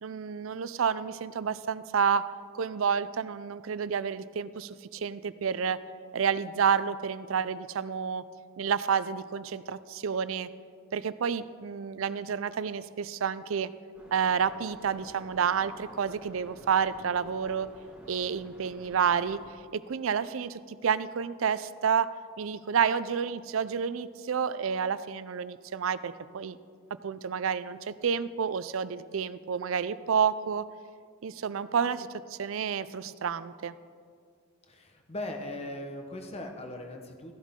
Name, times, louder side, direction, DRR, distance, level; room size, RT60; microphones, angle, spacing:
voice 1, 0.0-2.2 2.5-5.8 6.1-8.2 8.6-10.5 10.9-13.7 14.1-17.7 18.1-19.4 19.7-26.6 27.0-30.6 31.2-33.7, right 7 dB, 70° right, 15 dB, 0.4 m, -29 dB
sound 1, 13.9-19.5, equal, 5° right, 1.6 m, -51 dB
voice 2, 34.7-37.4, left 1 dB, 30° left, 3 dB, 1.1 m, -39 dB
15.0 x 11.0 x 3.7 m, 2.1 s
head